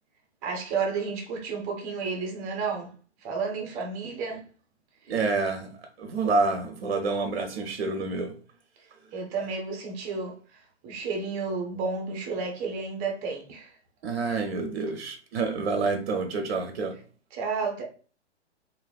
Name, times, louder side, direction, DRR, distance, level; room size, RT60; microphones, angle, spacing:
voice 1, 0.4-2.9 3.2-4.4 9.1-13.7 17.3-17.8, right 4 dB, 25° right, 0.8 m, -32 dB
voice 2, 5.1-5.7 6.0-8.3 14.0-16.9, right 4 dB, 60° right, 0.7 m, -28 dB
3.2 x 2.6 x 2.3 m
figure-of-eight pair, 120°, 34 cm